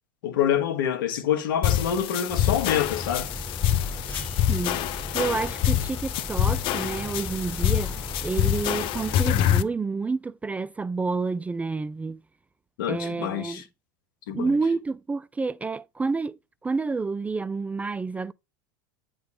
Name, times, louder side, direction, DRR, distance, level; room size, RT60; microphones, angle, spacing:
voice 1, 0.2-3.3 12.8-13.6 14.3-14.5, left 9 dB, 80° left, 1.4 m, -26 dB
sound 1, 1.6-9.6, left 11 dB, 50° left, 0.7 m, -26 dB
sound 2, 2.3-9.2, left 2 dB, 15° left, 4.1 m, -37 dB
voice 2, 4.5-4.8 5.1-12.2 12.9-13.6 14.3-18.3, right 4 dB, 15° right, 0.3 m, -29 dB
9.6 x 3.8 x 4.8 m
hypercardioid pair, 100°, 11 cm